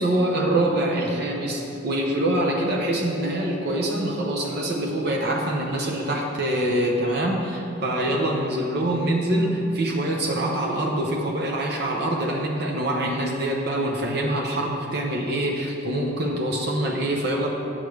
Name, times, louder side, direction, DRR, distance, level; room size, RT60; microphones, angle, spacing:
voice 1, 0.0-17.5, right 1 dB, 60° right, -1 dB, 0.9 m, -25 dB
9.0 x 6.8 x 4.8 m, 2.7 s
head